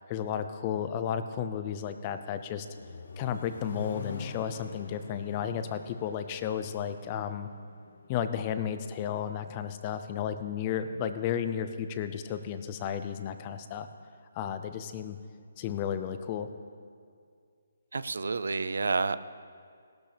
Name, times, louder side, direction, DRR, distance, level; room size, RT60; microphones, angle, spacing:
voice 1, 0.1-2.7 3.2-7.5 8.1-13.9 14.3-15.2 15.6-16.5, left 8 dB, 25° left, 10 dB, 0.6 m, -33 dB
Accelerating revving vroom, 2.2-8.2, left 3 dB, 65° left, 1.1 m, -45 dB
voice 2, 17.9-19.2, right 4 dB, 80° right, 14 dB, 0.5 m, -29 dB
17.0 x 12.5 x 3.4 m, 2.2 s
hypercardioid pair, 160°, 0 cm